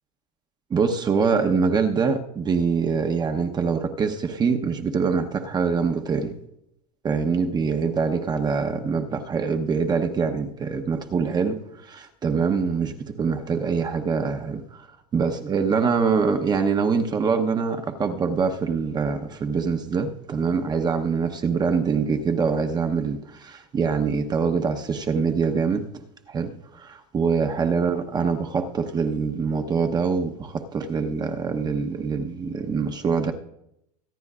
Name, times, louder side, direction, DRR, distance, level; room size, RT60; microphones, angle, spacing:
voice 1, 0.7-6.4 7.0-14.9 15.1-25.9 26.3-33.3, right 5 dB, 20° right, 0.9 m, -24 dB
24.0 x 9.5 x 2.5 m
supercardioid pair, 125°, 19 cm